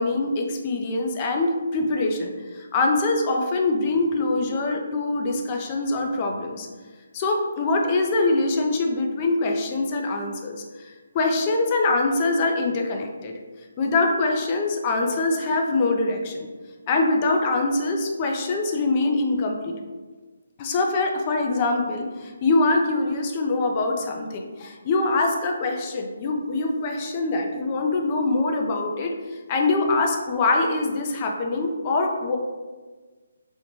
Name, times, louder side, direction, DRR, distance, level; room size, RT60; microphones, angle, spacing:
voice 1, 0.0-6.7 7.1-13.4 13.8-16.5 16.9-19.8 20.6-32.4, left 2 dB, 25° left, 2 dB, 0.3 m, -24 dB
2.5 x 2.1 x 3.0 m, 1.3 s
hypercardioid pair, 165°, 0 cm